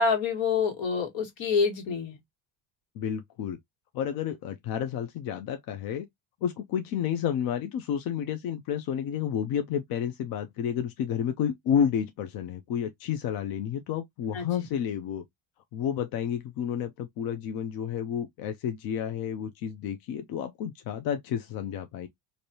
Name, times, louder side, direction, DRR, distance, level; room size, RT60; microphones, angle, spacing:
voice 1, 0.0-2.2 14.3-14.5, left 5 dB, 70° left, 1.7 m, -26 dB
voice 2, 3.0-3.6 3.9-6.1 6.4-15.2 15.7-22.1, left 8 dB, 50° left, 0.5 m, -30 dB
3.2 x 2.6 x 2.7 m
cardioid pair, 155°, 46 cm